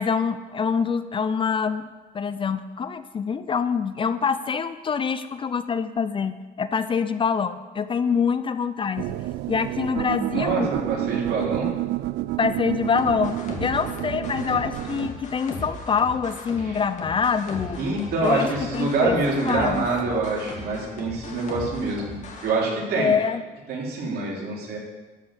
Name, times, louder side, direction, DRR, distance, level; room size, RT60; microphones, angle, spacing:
voice 1, 0.0-1.9 2.1-9.1 9.5-10.7 12.4-17.8 18.2-18.5 18.7-19.2 19.4-19.9 23.0-23.4, left 6 dB, 30° left, 12 dB, 0.5 m, -25 dB
sound 1, 9.0-15.1, right 16 dB, 90° right, 0.4 m, -29 dB
voice 2, 10.3-11.7 16.6-16.8 17.8-22.2 22.4-23.1 23.7-24.8, right 3 dB, 70° right, -2 dB, 3.4 m, -26 dB
sound 2, 12.8-22.5, left 3 dB, 45° left, 2.2 m, -37 dB
13.0 x 5.5 x 8.3 m, 1.2 s
cardioid pair, 110°, 17 cm